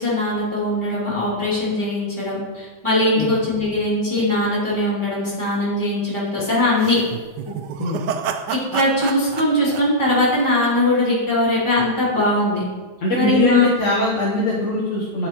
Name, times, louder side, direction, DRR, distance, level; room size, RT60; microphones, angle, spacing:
voice 1, 0.0-7.0 8.5-12.6 13.2-13.7, left 1 dB, 15° left, -7 dB, 2.5 m, -20 dB
sound 1, 6.8-10.9, right 8 dB, 75° right, 1.1 m, -30 dB
voice 2, 13.0-15.3, left 1 dB, 45° left, -5 dB, 1.3 m, -21 dB
8.8 x 4.7 x 4.4 m, 1.3 s
omnidirectional pair, 2.1 m